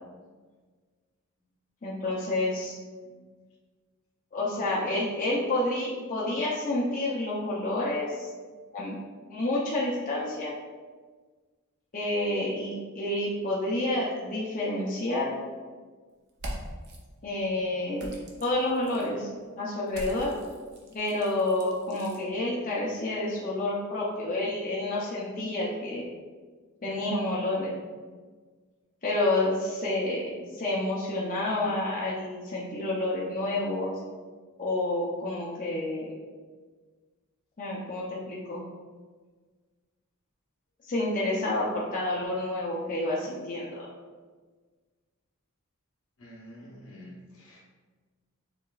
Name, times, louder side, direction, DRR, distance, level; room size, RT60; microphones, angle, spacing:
voice 1, 1.8-2.8 4.3-8.3 8.7-8.9 9.3-10.5 11.9-15.3 17.2-18.1 18.4-19.3 19.6-20.3 20.9-26.0 26.8-27.8 29.0-33.9 34.6-36.1 37.6-38.6 40.8-43.9, left 2 dB, 35° left, -6 dB, 0.7 m, -29 dB
sound 1, 16.3-17.0 18.0-19.1 19.9-22.2, right 1 dB, 50° right, 0.7 m, -42 dB
voice 2, 46.2-47.6, equal, 65° left, -3 dB, 1.2 m, -48 dB
7.0 x 3.0 x 2.4 m, 1.4 s
head